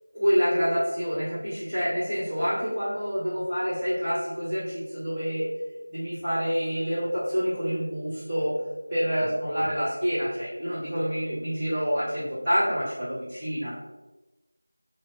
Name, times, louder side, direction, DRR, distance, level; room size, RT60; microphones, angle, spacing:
voice 1, 0.1-5.5 5.9-8.5 8.9-13.7, equal, 5° right, -22 dB, 1.1 m, -27 dB
3.4 x 2.8 x 2.3 m, 1.1 s
figure-of-eight pair, 175°, 0 cm